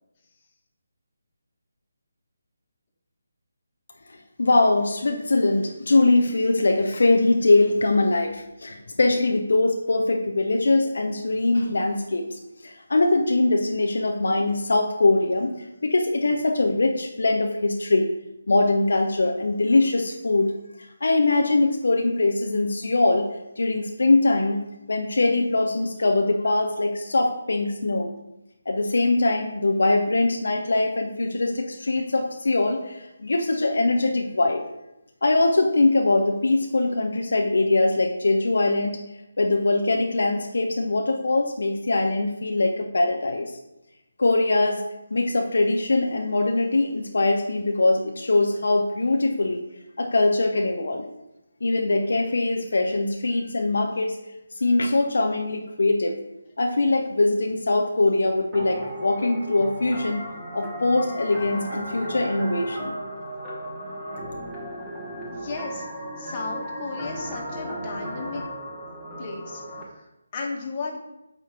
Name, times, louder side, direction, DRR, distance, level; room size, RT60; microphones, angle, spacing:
voice 1, 4.1-18.1 18.5-20.5 20.8-23.3 23.6-28.1 28.7-34.6 35.2-39.0 39.4-43.6 44.2-44.8 45.1-49.6 50.0-51.1 51.6-54.2 54.6-56.2 56.6-60.2 60.5-62.9, left 2 dB, 65° left, 3 dB, 0.7 m, -22 dB
sound 1, 58.5-69.8, equal, 10° right, 1.6 m, -35 dB
voice 2, 65.3-65.8 66.2-68.4 69.2-69.6 69.9-71.0, left 3 dB, 30° left, -1 dB, 1.5 m, -34 dB
8.7 x 3.0 x 5.8 m, 0.92 s
figure-of-eight pair, 150°, 0 cm